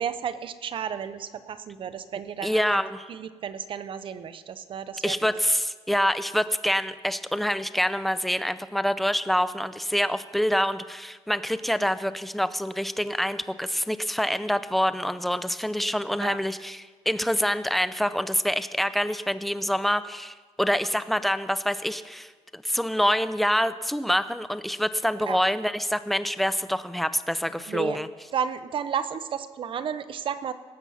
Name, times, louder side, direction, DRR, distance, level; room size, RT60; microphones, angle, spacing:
voice 1, 0.0-2.8 3.1-5.4 11.8-11.9 16.2-16.4 25.3-25.4 27.7-28.0 28.3-30.5, right 7 dB, 50° right, 12 dB, 0.7 m, -32 dB
voice 2, 2.4-3.0 5.0-28.1, equal, ahead, 13 dB, 0.4 m, -26 dB
19.0 x 7.2 x 5.5 m, 1.4 s
cardioid pair, 130°, 11 cm